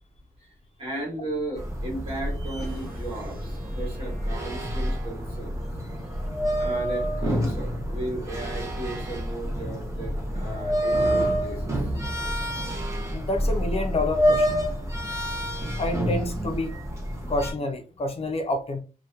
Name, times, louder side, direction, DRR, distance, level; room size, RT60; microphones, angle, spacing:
voice 1, 0.4-5.6 6.6-12.4 17.2-17.3, right 1 dB, 40° right, -4 dB, 1.3 m, -36 dB
sound 1, 1.6-17.5, equal, 20° right, 0.6 m, -28 dB
sound 2, 2.6-10.6, equal, 80° right, 0.5 m, -50 dB
voice 2, 13.1-14.6 15.8-16.8 17.3-18.8, left 2 dB, 45° left, 5 dB, 0.3 m, -28 dB
2.7 x 2.1 x 2.3 m, 0.33 s
wide cardioid pair, 180°, 15 cm